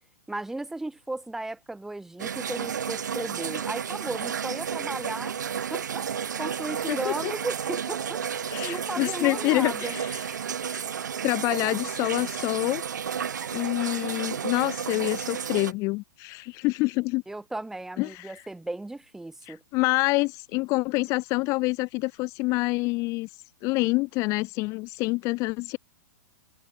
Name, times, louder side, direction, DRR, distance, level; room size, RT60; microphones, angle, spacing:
voice 1, 0.3-5.4 5.7-10.0 17.3-19.6, right 2 dB, 5° right, 3.0 m, -35 dB
sound 1, 2.2-15.7, right 7 dB, 90° right, 1.8 m, -32 dB
voice 2, 6.9-7.3 8.5-10.2 10.6-10.8 11.2-12.8 13.5-17.2 18.0-18.4 19.4-25.8, left 24 dB, 35° left, 1.1 m, -27 dB
hypercardioid pair, 145°, 9 cm